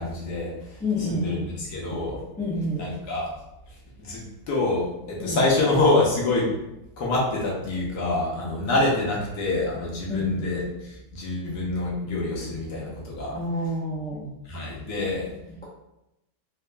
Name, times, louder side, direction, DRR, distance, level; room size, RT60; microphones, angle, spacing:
voice 1, 0.0-2.2 2.8-3.3 3.7-6.6 7.0-13.4 14.4-15.3, left 2 dB, 70° left, -3 dB, 1.4 m, -26 dB
voice 2, 0.8-1.5 2.4-2.8 5.2-5.4 10.1-10.5 13.3-14.3, left 1 dB, 10° left, -7 dB, 0.4 m, -28 dB
4.0 x 2.7 x 2.2 m, 0.89 s
omnidirectional pair, 1.8 m